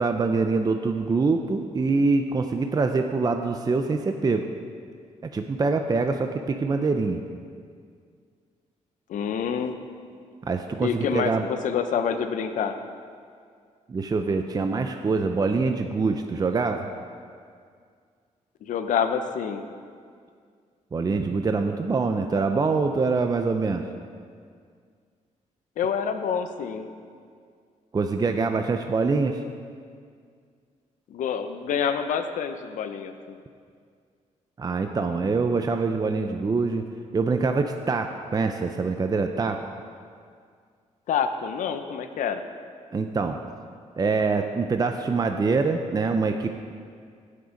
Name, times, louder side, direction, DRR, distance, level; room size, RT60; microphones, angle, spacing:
voice 1, 0.0-4.5 5.3-7.2 10.4-11.5 13.9-16.9 20.9-23.8 27.9-29.4 34.6-36.8 37.1-39.7 42.9-43.4 44.0-46.5, right 4 dB, 30° right, 6 dB, 0.6 m, -24 dB
voice 2, 9.1-9.8 10.8-12.7 18.6-19.6 25.8-26.9 31.1-33.4 41.1-42.4, left 7 dB, 80° left, 8 dB, 0.8 m, -27 dB
16.5 x 6.6 x 5.2 m, 2.1 s
cardioid pair, 105°, 13 cm